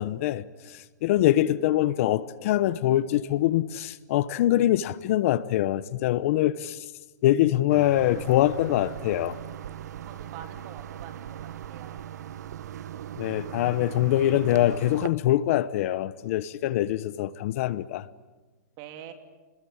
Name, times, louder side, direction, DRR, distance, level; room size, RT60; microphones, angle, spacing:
voice 1, 0.0-6.8 7.2-9.4 13.2-18.1, left 13 dB, 55° left, 0.9 m, -24 dB
sound 1, 7.7-15.1, right 10 dB, 75° right, 1.1 m, -39 dB
voice 2, 10.0-11.4 11.7-12.0 18.8-19.1, right 10 dB, 40° right, 2.9 m, -44 dB
28.5 x 21.5 x 8.7 m
hypercardioid pair, 145°, 9 cm